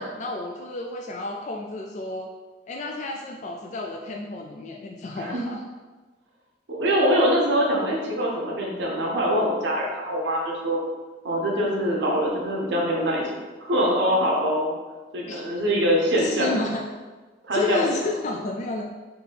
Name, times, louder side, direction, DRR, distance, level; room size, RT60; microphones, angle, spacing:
voice 1, 0.0-2.3 2.7-5.6 15.3-15.4 16.2-16.8 17.5-18.9, left 2 dB, 40° left, 1 dB, 0.3 m, -31 dB
voice 2, 6.7-10.8 11.2-13.3 13.6-14.7 15.1-16.5 17.4-17.9, equal, 75° right, -2 dB, 0.8 m, -23 dB
4.3 x 2.7 x 3.3 m, 1.3 s
head